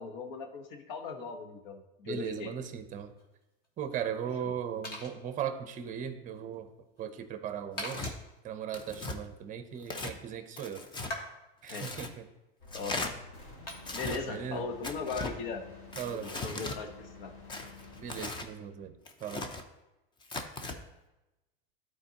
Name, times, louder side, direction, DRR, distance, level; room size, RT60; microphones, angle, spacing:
voice 1, 0.0-2.5 4.4-4.5 11.7-12.0 12.7-13.1 13.9-15.7 16.2-17.3, left 4 dB, 70° left, 5 dB, 1.2 m, -39 dB
voice 2, 2.0-3.1 3.8-6.7 7.0-8.1 8.4-10.8 11.6-12.3 14.3-14.6 16.0-16.3 18.0-18.9 19.2-19.5, right 8 dB, 25° right, 9 dB, 0.7 m, -38 dB
sound 1, 2.5-18.3, left 1 dB, 30° left, 1.6 m, -49 dB
Tearing, 7.8-8.1 8.7-9.2 9.8-10.2 10.6-11.1 11.7-12.1 12.7-13.1 13.8-14.2 14.8-15.3 15.9-16.8 17.5-18.5 19.1-19.6 20.2-20.8, left 3 dB, 15° left, 0.6 m, -38 dB
sound 2, 12.6-18.4, left 3 dB, 50° left, 2.5 m, -50 dB
12.0 x 4.4 x 2.9 m, 0.99 s
supercardioid pair, 130°, 29 cm